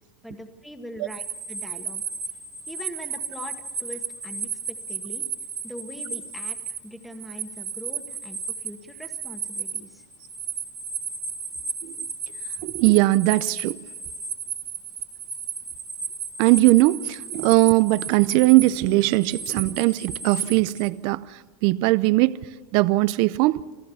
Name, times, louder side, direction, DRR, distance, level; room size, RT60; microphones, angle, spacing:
voice 1, 0.2-2.0 2.7-5.2 5.6-10.1, equal, ahead, 1.6 m, -42 dB
sound 1, 1.1-20.9, right 5 dB, 30° right, 2.3 m, -34 dB
voice 2, 12.6-13.8 16.4-22.3 22.7-23.6, right 20 dB, 45° right, 0.5 m, -20 dB
27.0 x 14.5 x 7.1 m
supercardioid pair, 145°, 10 cm